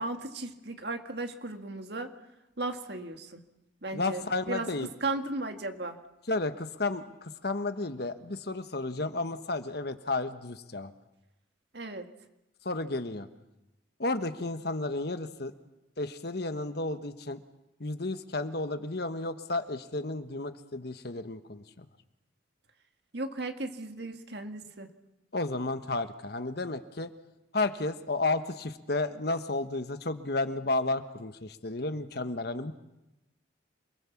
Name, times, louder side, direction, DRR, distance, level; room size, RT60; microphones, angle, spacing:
voice 1, 0.0-2.1 2.6-3.4 3.8-6.0 11.7-12.1 23.1-24.9, right 2 dB, 55° right, 6 dB, 1.9 m, -36 dB
voice 2, 3.9-4.9 6.3-10.9 12.6-13.3 14.0-15.5 16.0-17.4 17.8-21.8 25.3-27.1 27.5-32.7, left 2 dB, 55° left, 10 dB, 1.3 m, -32 dB
28.0 x 22.0 x 7.2 m, 0.96 s
head